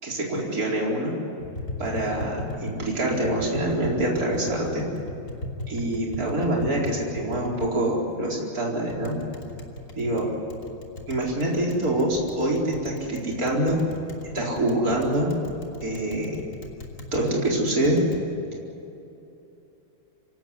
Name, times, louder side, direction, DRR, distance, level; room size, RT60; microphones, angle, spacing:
voice 1, 0.0-1.1 1.8-4.9 5.7-9.1 10.0-10.3 11.1-13.8 14.3-15.3 15.8-16.3 17.1-18.0, right 1 dB, 45° right, -3 dB, 4.9 m, -25 dB
Tap, 1.4-18.2, left 1 dB, 35° left, 3.1 m, -38 dB
27.0 x 17.5 x 9.8 m, 2.9 s
omnidirectional pair, 2.3 m